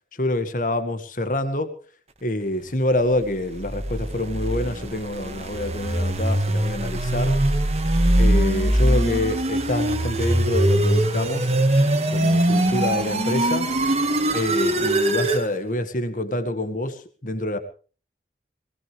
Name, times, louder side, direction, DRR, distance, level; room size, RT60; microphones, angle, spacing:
voice 1, 0.1-1.7 2.2-7.4 8.2-11.5 12.1-13.7 14.3-17.6, left 1 dB, 45° left, 9 dB, 1.9 m, -26 dB
sound 1, 3.3-15.5, right 1 dB, 35° right, 2.0 m, -22 dB
20.0 x 19.0 x 3.5 m, 0.39 s
head